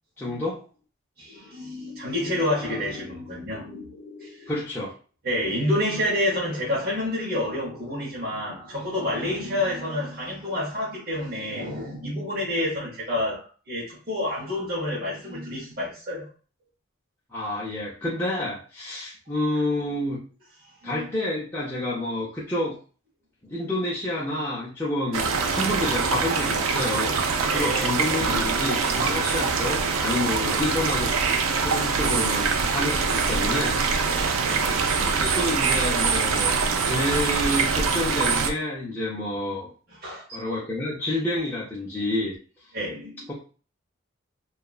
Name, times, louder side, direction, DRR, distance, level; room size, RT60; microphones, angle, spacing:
voice 1, 0.2-0.6 4.5-4.9 17.3-20.2 20.8-22.8 23.4-31.1 31.6-34.0 35.0-39.7 40.3-42.4 43.3-43.4, left 1 dB, 10° left, 0.5 m, -29 dB
voice 2, 1.2-4.5 5.2-16.3 20.6-21.1 27.5-27.9 28.2-28.7 34.5-35.3 40.0-40.4 42.7-43.3, left 1 dB, 50° right, 0.9 m, -29 dB
sound 1, 25.1-38.5, right 5 dB, 85° right, 0.4 m, -24 dB
2.8 x 2.3 x 2.3 m
head